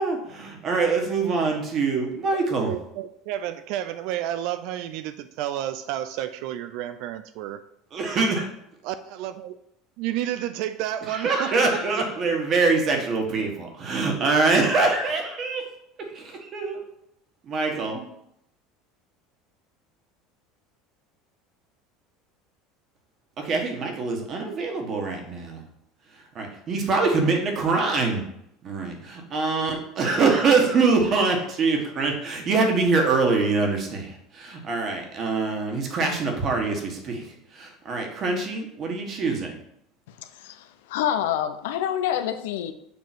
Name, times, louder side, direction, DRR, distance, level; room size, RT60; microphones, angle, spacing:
voice 1, 0.0-2.7 7.9-8.5 11.1-15.6 16.0-16.8 17.5-18.0 23.4-25.6 26.3-28.2 28.6-39.5, right 4 dB, 40° right, 1.5 m, -24 dB
voice 2, 2.3-7.6 8.8-9.6 10.0-11.8, right 12 dB, 65° right, 0.4 m, -31 dB
voice 3, 40.2-42.7, left 10 dB, 90° left, 0.6 m, -27 dB
6.9 x 3.1 x 6.0 m
supercardioid pair, 125°, 0 cm